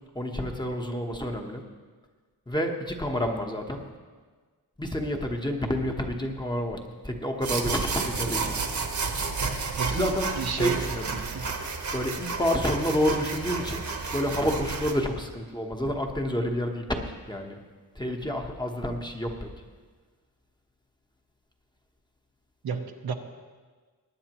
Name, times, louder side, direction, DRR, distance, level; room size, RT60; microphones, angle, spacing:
voice 1, 0.1-1.6 2.5-3.8 4.8-8.6 9.9-11.2 11.9-13.9 14.1-17.0 17.3-17.6 18.0-19.5, equal, 10° left, 2 dB, 1.1 m, -29 dB
sound 1, 7.4-14.9, right 4 dB, 45° right, 1.2 m, -31 dB
voice 2, 9.8-11.5 22.6-23.1, right 6 dB, 70° right, 5 dB, 1.0 m, -32 dB
21.0 x 9.7 x 3.0 m, 1.4 s
wide cardioid pair, 125°, 39 cm